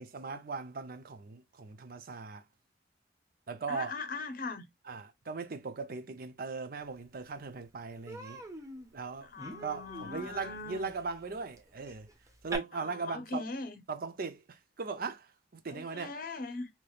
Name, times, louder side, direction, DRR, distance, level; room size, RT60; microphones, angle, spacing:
voice 1, 0.0-2.4 3.5-3.9 4.9-8.4 8.9-9.3 9.6-12.1 12.4-13.4 13.9-15.3 15.5-16.1, right 4 dB, 55° right, 0.6 m, -39 dB
voice 2, 3.7-4.7 9.2-10.9 12.7-13.8 15.7-16.7, left 3 dB, 55° left, 0.8 m, -40 dB
Human voice, 7.1-7.2 7.5-7.7 8.1-12.6, right 1 dB, 20° right, 0.9 m, -45 dB
3.3 x 3.0 x 2.2 m
head